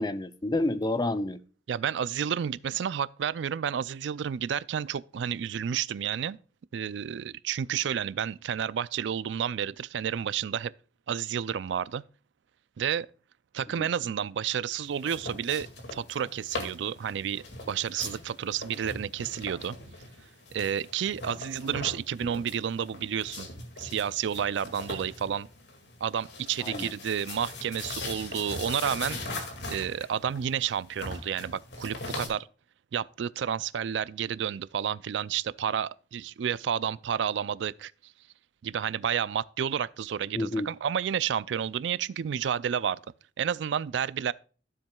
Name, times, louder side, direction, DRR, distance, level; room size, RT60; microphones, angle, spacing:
voice 1, 0.0-1.4 13.8-13.9 26.6-26.9 40.3-40.7, left 2 dB, 20° left, 0.5 m, -29 dB
voice 2, 1.7-6.4 6.7-10.7 11.1-12.0 12.8-13.1 13.5-19.8 20.5-23.5 23.8-25.5 26.0-29.2 29.7-32.5 32.9-37.9 38.6-43.0 43.4-44.3, right 8 dB, 75° right, 0.4 m, -30 dB
sound 1, 14.8-32.3, left 2 dB, 65° left, 2.1 m, -41 dB
12.5 x 7.3 x 2.3 m
head